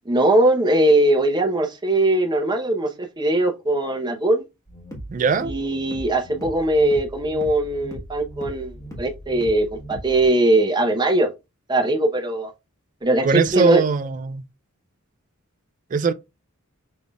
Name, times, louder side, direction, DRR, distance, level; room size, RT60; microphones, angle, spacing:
voice 1, 0.1-4.4 5.4-11.3 11.7-12.5 13.0-13.8, right 1 dB, 20° right, 0.8 m, -20 dB
sound 1, 4.7-10.3, equal, 15° left, 1.3 m, -38 dB
voice 2, 5.1-5.5 13.2-14.4 15.9-16.1, right 5 dB, 35° right, 0.4 m, -20 dB
5.2 x 3.5 x 2.3 m
head